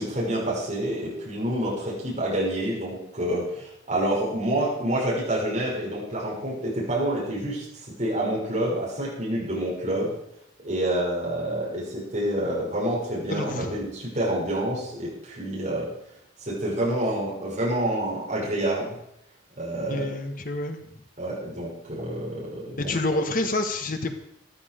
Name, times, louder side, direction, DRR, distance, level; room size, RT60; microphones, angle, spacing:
voice 1, 0.0-7.7 8.0-10.1 10.6-15.9 16.4-19.0 19.5-20.2 21.2-22.9, right 1 dB, 35° right, -5 dB, 6.4 m, -28 dB
voice 2, 13.3-13.8 19.9-20.8 22.8-24.1, left 2 dB, 45° left, 6 dB, 1.3 m, -28 dB
14.5 x 12.0 x 5.0 m, 0.76 s
head